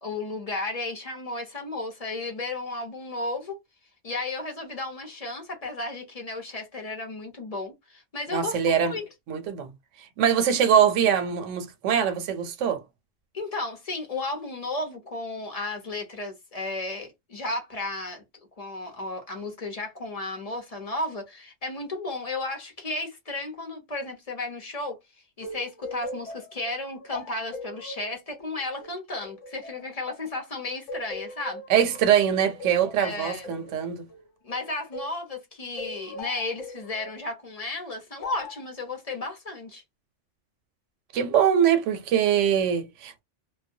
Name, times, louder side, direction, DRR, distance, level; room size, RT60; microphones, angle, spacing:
voice 1, 0.0-3.6 4.0-9.1 13.3-18.2 18.6-25.0 25.4-31.6 33.0-33.5 34.4-39.8, left 2 dB, 40° left, 0.7 m, -34 dB
voice 2, 8.3-9.0 9.3-9.7 10.2-12.8 31.7-34.1 41.1-43.2, right 8 dB, 90° right, 1.0 m, -23 dB
sound 1, 25.4-30.4 30.9-35.2 35.8-37.2 38.2-38.7, left 2 dB, 90° left, 1.0 m, -40 dB
2.2 x 2.1 x 2.6 m
omnidirectional pair, 1.2 m